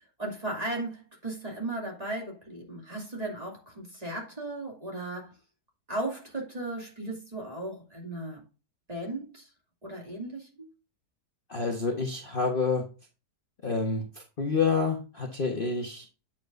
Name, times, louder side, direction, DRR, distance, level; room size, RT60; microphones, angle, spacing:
voice 1, 0.2-5.3 5.9-8.4 8.9-9.5 9.8-10.7, right 2 dB, 20° right, 2.6 m, -36 dB
voice 2, 11.5-12.8 13.6-14.0 14.4-16.1, left 4 dB, 35° left, 1.3 m, -28 dB
8.5 x 7.6 x 2.6 m
omnidirectional pair, 1.8 m